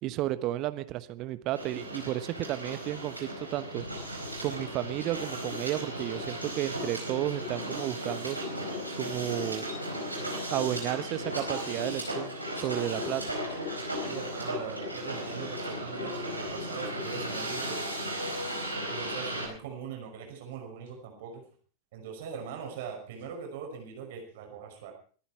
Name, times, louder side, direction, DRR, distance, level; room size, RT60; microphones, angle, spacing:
voice 1, 0.0-3.8 4.4-8.4 8.9-9.7 10.5-13.2, right 14 dB, 40° right, 13 dB, 1.1 m, -32 dB
Hiss, 1.6-19.4, equal, 85° right, 4.6 m, -35 dB
voice 2, 14.0-17.8 18.9-21.4 21.9-24.9, right 6 dB, 55° right, 2 dB, 5.6 m, -41 dB
23.0 x 10.5 x 4.7 m, 0.42 s
figure-of-eight pair, 90°, 0 cm